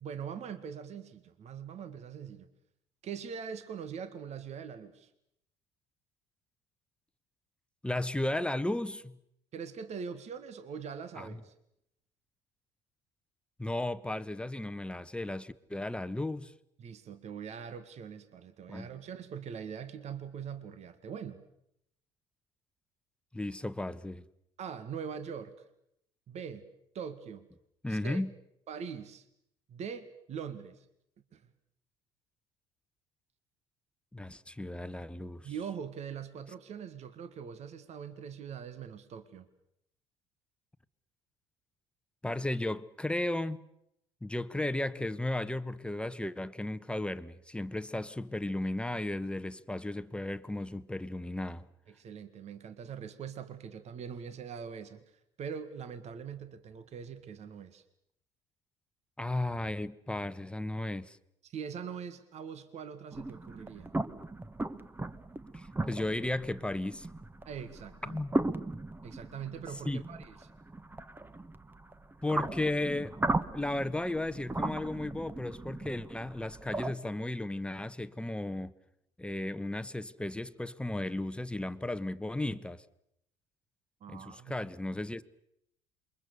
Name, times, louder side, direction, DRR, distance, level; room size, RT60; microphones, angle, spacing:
voice 1, 0.0-2.5 3.0-5.1 9.5-11.5 16.8-21.4 24.6-25.6 26.3-26.7 26.9-27.5 27.9-28.2 28.7-29.3 29.7-30.9 31.3-31.5 35.4-39.5 51.9-57.8 61.4-63.9 67.5-68.2 69.0-70.5 84.0-84.6, right 7 dB, 50° right, 1.8 m, -42 dB
voice 2, 7.8-9.2 11.2-11.3 13.6-16.5 18.7-18.9 23.3-24.2 27.8-28.3 34.1-35.5 42.2-43.6 44.2-51.7 59.2-61.2 65.5-67.1 68.0-68.3 69.9-70.0 72.2-73.2 73.5-78.7 79.2-82.8 84.1-85.2, left 1 dB, 5° left, 1.1 m, -35 dB
sound 1, 63.1-76.9, right 2 dB, 15° right, 1.3 m, -37 dB
27.5 x 23.0 x 6.9 m
hypercardioid pair, 65°, 15 cm